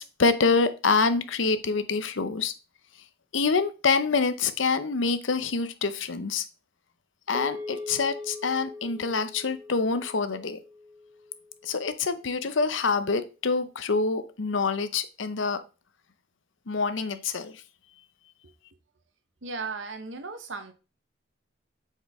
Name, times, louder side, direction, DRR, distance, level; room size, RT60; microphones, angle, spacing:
voice 1, 0.0-2.5 3.3-6.4 7.3-10.6 11.6-15.6 16.7-17.6, left 4 dB, 85° left, 0.7 m, -26 dB
sound 1, 7.3-11.8, left 3 dB, 10° right, 0.7 m, -41 dB
voice 2, 19.4-20.7, right 4 dB, 85° right, 1.1 m, -36 dB
7.9 x 4.7 x 3.6 m
head